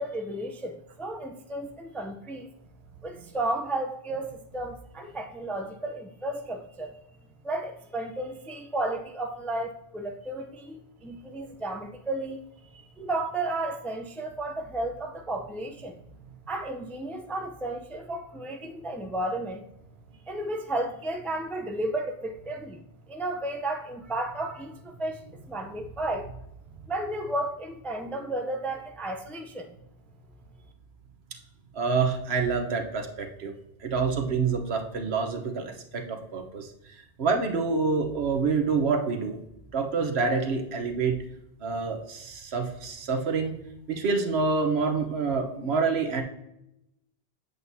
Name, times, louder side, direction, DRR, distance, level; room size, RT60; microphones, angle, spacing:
voice 1, 0.0-2.5 3.0-7.0 7.4-12.4 13.0-16.0 16.5-19.7 20.3-22.8 23.1-26.3 26.9-29.8, right 1 dB, ahead, 4 dB, 0.4 m, -33 dB
voice 2, 31.7-33.5 33.8-36.7 37.2-39.4 39.7-41.1 41.6-43.5 43.9-46.2, right 4 dB, 75° right, 4 dB, 1.2 m, -27 dB
8.1 x 7.7 x 2.7 m, 0.83 s
omnidirectional pair, 1.1 m